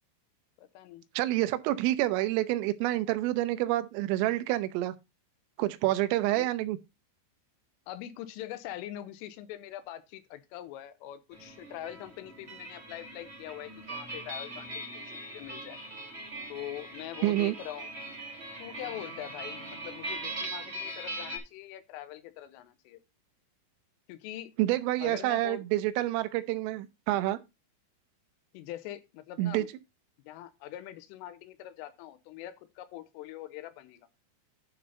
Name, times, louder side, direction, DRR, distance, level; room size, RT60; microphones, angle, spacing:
voice 1, 0.6-1.0 6.3-6.5 7.9-15.8 16.5-17.9 18.6-23.0 24.1-24.5 25.0-25.6 28.5-29.7 30.2-34.1, left 13 dB, 90° left, 3.3 m, -43 dB
voice 2, 1.2-4.9 5.6-6.8 17.2-17.6 24.6-27.4 29.4-29.7, right 16 dB, 85° right, 3.3 m, -28 dB
sound 1, 11.3-21.4, right 1 dB, 60° right, 0.6 m, -41 dB
11.5 x 4.0 x 5.4 m
omnidirectional pair, 5.8 m